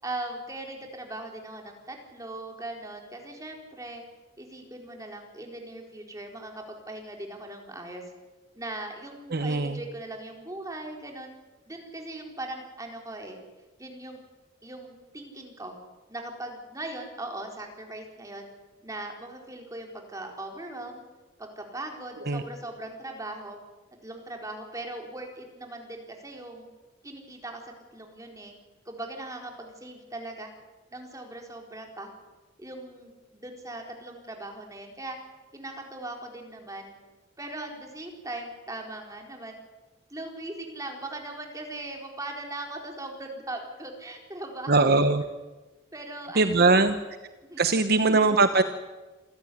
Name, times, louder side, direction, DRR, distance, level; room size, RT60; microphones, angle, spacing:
voice 1, 0.0-4.0 4.4-8.0 8.5-11.3 11.7-13.4 13.8-14.2 14.6-15.7 16.1-18.5 18.8-21.0 21.4-23.6 24.0-26.7 27.0-28.5 28.8-30.5 30.9-32.1 32.6-35.2 35.5-36.9 37.4-39.6 40.1-44.9 45.9-47.0 47.5-47.8, right 2 dB, 20° right, 2 dB, 4.3 m, -39 dB
voice 2, 9.3-9.8 22.3-22.4 44.7-45.2 46.4-47.0 47.6-48.6, right 3 dB, 55° right, 9 dB, 1.0 m, -21 dB
27.5 x 13.5 x 10.0 m, 1.2 s
head